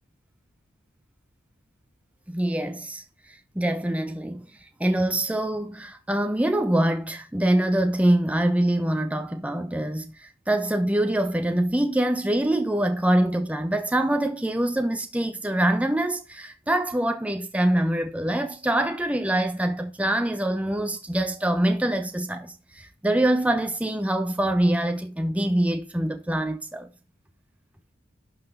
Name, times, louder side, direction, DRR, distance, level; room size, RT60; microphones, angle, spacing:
voice 1, 2.3-4.5 4.8-26.9, right 1 dB, 5° right, 0.9 m, -24 dB
11.5 x 6.1 x 3.9 m
head